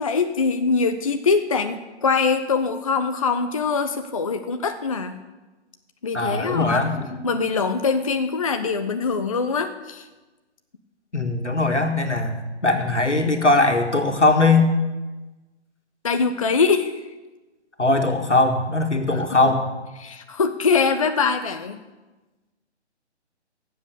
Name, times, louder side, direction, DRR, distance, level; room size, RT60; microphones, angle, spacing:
voice 1, 0.0-5.2 6.0-6.8 7.2-10.1 16.0-17.0 19.1-19.2 20.0-21.8, left 5 dB, 30° left, 8 dB, 0.5 m, -23 dB
voice 2, 6.1-7.2 11.1-12.4 12.6-14.7 17.8-19.7, left 2 dB, 85° left, 4 dB, 1.9 m, -20 dB
17.5 x 7.7 x 6.6 m, 1.2 s
figure-of-eight pair, 140°, 34 cm